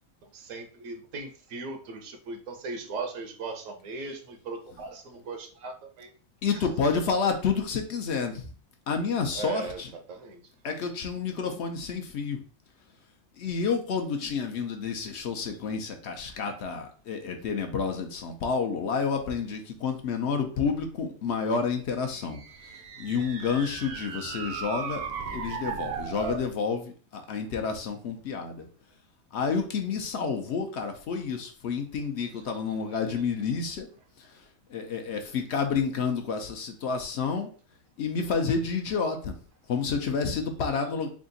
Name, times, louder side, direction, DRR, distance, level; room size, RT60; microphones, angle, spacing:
voice 1, 0.3-6.1 9.3-9.8 10.1-10.4, right 3 dB, 80° right, 6 dB, 1.1 m, -38 dB
voice 2, 6.4-8.5 8.9-9.9 10.6-12.4 13.4-22.4 23.0-28.7 29.3-33.9 34.2-34.3 34.7-37.5 38.0-39.3 39.7-41.1, left 5 dB, 65° left, 5 dB, 0.8 m, -29 dB
sound 1, 22.1-26.5, right 6 dB, 65° right, 0.6 m, -36 dB
3.5 x 2.4 x 3.9 m, 0.41 s
omnidirectional pair, 1.4 m